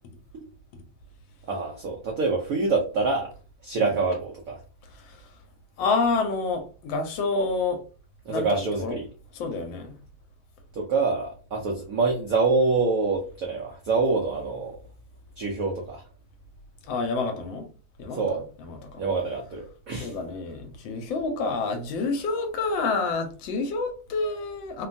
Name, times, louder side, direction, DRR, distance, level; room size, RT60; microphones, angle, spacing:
voice 1, 1.5-3.3 3.6-4.6 8.3-9.1 10.8-14.8 15.4-16.0 18.1-18.4 19.0-20.1, right 4 dB, 80° right, 0.7 m, -26 dB
voice 2, 5.8-7.8 8.3-9.0 9.3-10.0 16.9-17.7 18.0-19.0 20.0-24.9, left 3 dB, 75° left, 1.3 m, -28 dB
3.2 x 2.2 x 2.5 m
omnidirectional pair, 2.2 m